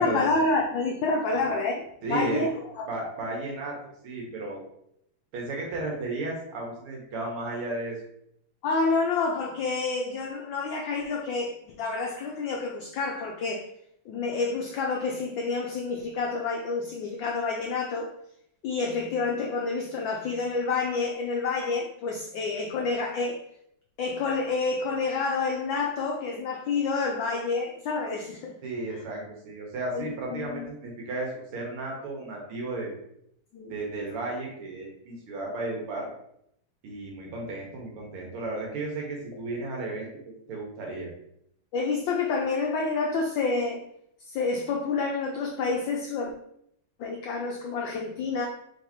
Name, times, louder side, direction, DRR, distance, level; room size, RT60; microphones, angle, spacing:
voice 1, 0.0-2.6 8.6-13.7 14.1-18.1 18.6-23.4 24.0-28.5 28.9-29.0 29.9-30.7 33.5-33.7 41.7-43.8 44.2-46.3 47.0-48.5, left 4 dB, 70° left, 0 dB, 1.2 m, -28 dB
voice 2, 2.0-2.4 2.9-3.8 4.0-4.6 5.3-7.9 28.6-32.9 33.7-36.1 36.8-40.1 40.5-41.1, right 2 dB, 80° right, -1 dB, 2.0 m, -34 dB
5.0 x 3.9 x 2.7 m, 0.74 s
omnidirectional pair, 2.4 m